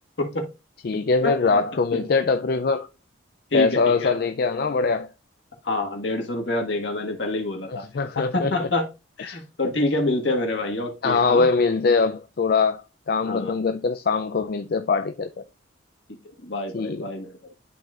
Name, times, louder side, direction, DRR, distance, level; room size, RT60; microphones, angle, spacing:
voice 1, 0.2-0.5 1.2-1.6 1.9-2.1 3.5-4.2 5.6-7.8 8.1-8.9 9.2-11.5 13.2-13.6 16.4-17.5, left 2 dB, 70° left, 1.6 m, -27 dB
voice 2, 0.8-2.9 3.5-5.1 7.7-8.7 9.3-9.4 11.0-15.4 16.7-17.1, left 4 dB, 50° left, 0.4 m, -22 dB
11.5 x 4.0 x 2.4 m
head